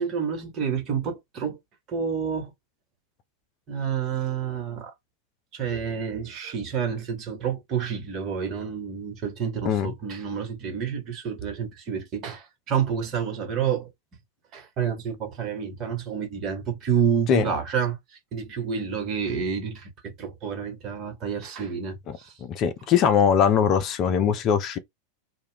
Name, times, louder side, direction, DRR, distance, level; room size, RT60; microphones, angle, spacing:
voice 1, 0.0-1.6 1.9-2.5 3.7-4.9 5.5-13.9 14.5-22.4, right 7 dB, 35° right, 1.2 m, -29 dB
voice 2, 22.4-24.8, left 7 dB, 35° left, 0.5 m, -21 dB
2.3 x 2.2 x 3.4 m
figure-of-eight pair, 90°, 0 cm